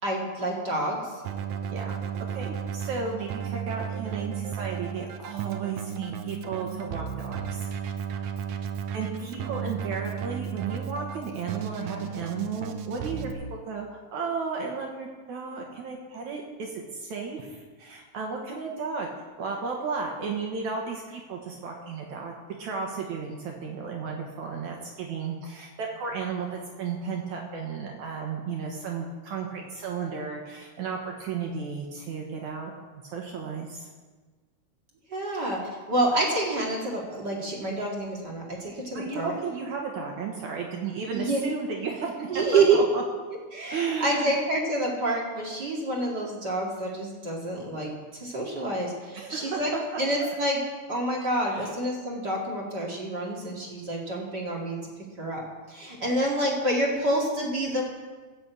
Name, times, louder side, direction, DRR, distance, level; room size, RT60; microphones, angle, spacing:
voice 1, 0.0-1.1 9.2-9.8 35.1-39.3 41.1-41.4 42.3-42.8 43.5-49.7 50.0-50.6 50.9-54.8 55.2-57.8, right 2 dB, 35° right, -3 dB, 2.3 m, -28 dB
Keyboard (musical), 1.2-13.3, right 7 dB, 85° right, 1.5 m, -34 dB
voice 2, 1.7-2.0 2.3-7.7 8.9-19.1 19.4-32.7 33.0-33.9 38.9-43.0 43.7-44.4 49.1-49.6 49.9-50.3 51.5-51.7, right 5 dB, 65° right, 0 dB, 2.4 m, -34 dB
15.5 x 6.2 x 8.1 m, 1.4 s
omnidirectional pair, 4.0 m